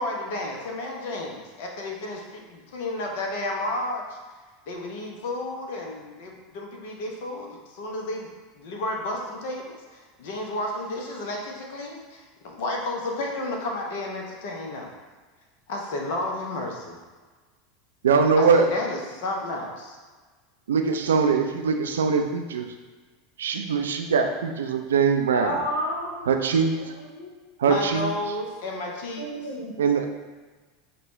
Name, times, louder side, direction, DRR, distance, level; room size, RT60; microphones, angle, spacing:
voice 1, 0.0-4.2 4.7-8.3 8.6-14.9 15.7-17.0 18.4-20.0 27.6-29.2, left 1 dB, 65° left, 0 dB, 0.7 m, -32 dB
voice 2, 18.0-18.6 20.7-22.7 23.4-25.6 26.3-26.7 27.6-28.1 29.8-30.1, right 5 dB, 80° right, 5 dB, 0.3 m, -22 dB
voice 3, 25.3-26.3 26.7-27.3 29.2-29.7, equal, 90° left, -3 dB, 0.9 m, -31 dB
6.0 x 2.2 x 3.0 m, 1.4 s
hypercardioid pair, 85°, 0 cm